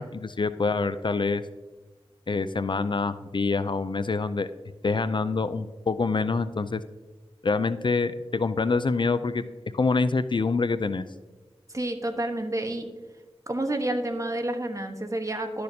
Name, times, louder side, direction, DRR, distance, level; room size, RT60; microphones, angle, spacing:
voice 1, 0.0-1.4 2.3-4.5 4.8-6.8 7.4-9.4 9.7-11.0, left 4 dB, 50° left, 12 dB, 0.4 m, -26 dB
voice 2, 11.7-12.9 13.5-15.6, right 1 dB, 30° right, 5 dB, 1.1 m, -29 dB
11.5 x 6.5 x 2.8 m, 1.3 s
wide cardioid pair, 50°, 10 cm